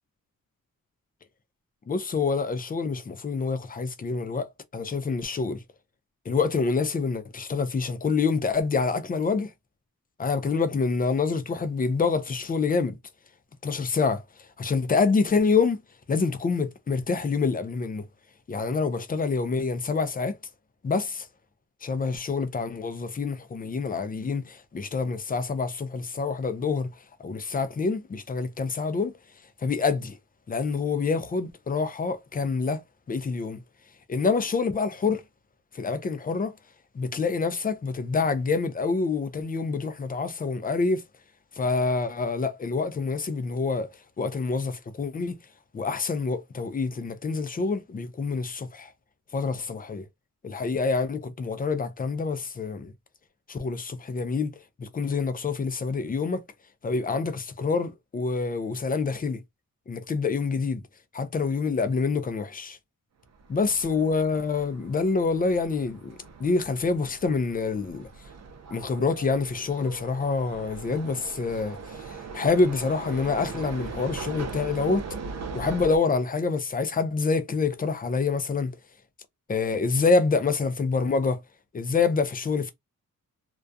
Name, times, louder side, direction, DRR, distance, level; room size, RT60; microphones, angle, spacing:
voice 1, 1.9-5.6 6.3-9.5 10.2-13.0 13.6-14.2 14.6-15.8 16.1-18.1 18.5-20.4 20.8-21.3 21.8-26.9 27.2-29.1 29.6-30.2 30.5-32.8 33.1-33.6 34.1-35.2 35.7-36.5 36.9-41.0 41.6-45.4 45.7-48.9 49.3-50.0 50.4-52.9 53.5-54.5 54.8-56.4 56.8-59.4 59.9-60.8 61.1-62.8 63.5-66.1 66.4-68.1 68.7-71.8 72.1-75.0 75.5-78.7 79.5-81.4 81.7-82.7, left 4 dB, 30° left, 0.4 m, -26 dB
sound 1, 63.4-76.0, right 4 dB, 55° right, 0.5 m, -40 dB
2.3 x 2.3 x 2.6 m
wide cardioid pair, 130°, 33 cm